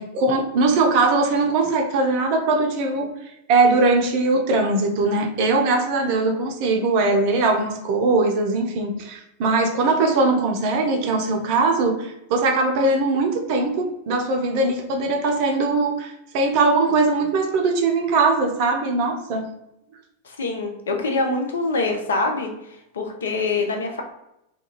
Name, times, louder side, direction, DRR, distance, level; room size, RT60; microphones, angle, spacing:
voice 1, 0.0-3.1 3.5-19.5, right 3 dB, 45° right, 3 dB, 0.5 m, -21 dB
voice 2, 20.2-22.5 22.9-24.0, left 3 dB, 65° left, 3 dB, 0.4 m, -24 dB
2.3 x 2.3 x 2.8 m, 0.84 s
figure-of-eight pair, 90°, 0 cm